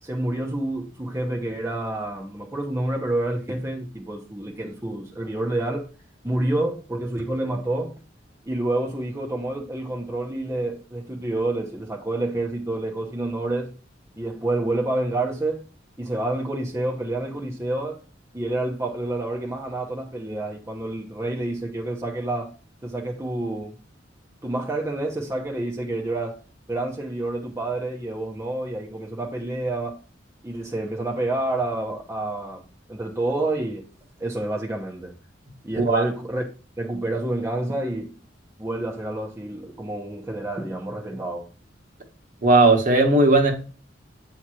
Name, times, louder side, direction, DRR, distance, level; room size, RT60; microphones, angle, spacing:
voice 1, 0.0-5.9 6.2-8.0 8.5-13.7 14.2-15.6 16.0-18.0 18.3-22.5 22.8-23.7 24.4-26.4 26.7-30.0 30.4-32.6 32.9-33.9 34.2-35.1 35.6-36.5 36.8-38.1 38.6-41.5, right 2 dB, 15° right, 0.9 m, -28 dB
voice 2, 42.4-43.5, right 2 dB, 45° right, 1.4 m, -17 dB
8.8 x 2.9 x 6.2 m
head